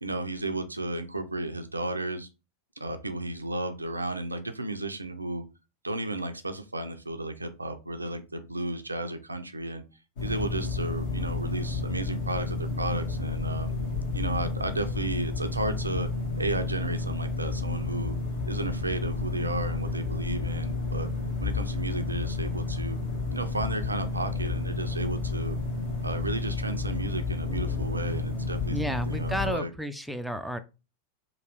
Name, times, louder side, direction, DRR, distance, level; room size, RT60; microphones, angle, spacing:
voice 1, 0.0-2.3 2.8-5.4 5.8-9.8 10.2-13.7 14.1-16.1 16.4-18.1 18.4-21.1 21.4-23.0 23.3-25.6 26.0-28.8 29.1-29.7, right 2 dB, 80° right, 8 dB, 0.4 m, -33 dB
sound 1, 10.2-29.5, left 3 dB, 55° left, 1.1 m, -31 dB
voice 2, 28.7-30.6, equal, ahead, 8 dB, 0.3 m, -32 dB
3.0 x 2.4 x 3.1 m, 0.29 s
figure-of-eight pair, 90°, 0 cm